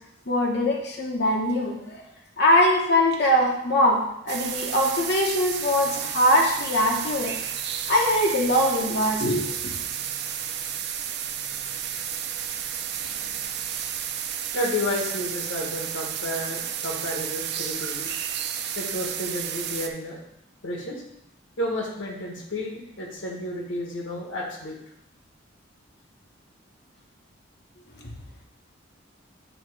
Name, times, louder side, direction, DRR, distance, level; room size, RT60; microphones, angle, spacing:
voice 1, 0.3-2.0 2.4-7.3 7.9-9.7, left 1 dB, 55° left, -2 dB, 1.1 m, -22 dB
sound 1, 4.3-19.9, right 9 dB, 55° right, 0.5 m, -32 dB
voice 2, 14.5-18.1 18.7-20.2 20.6-21.0 21.6-24.8, left 1 dB, 75° left, -1 dB, 1.4 m, -31 dB
8.7 x 2.9 x 4.8 m, 0.78 s
head